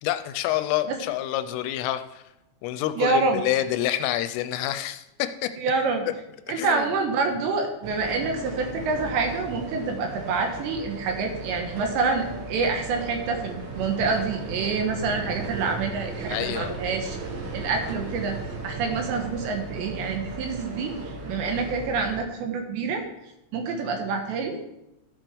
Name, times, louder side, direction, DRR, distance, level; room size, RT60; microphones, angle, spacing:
voice 1, 0.0-2.2 2.6-5.7 6.5-6.9 16.3-16.9, left 13 dB, 85° left, 10 dB, 2.9 m, -28 dB
voice 2, 3.0-3.4 5.6-6.1 6.5-17.2 17.5-18.4 18.6-23.0 23.5-24.6, right 4 dB, 75° right, 3 dB, 2.8 m, -27 dB
sound 1, 7.8-22.2, right 3 dB, 60° right, 3.3 m, -36 dB
14.5 x 7.5 x 3.4 m, 0.91 s
omnidirectional pair, 6.0 m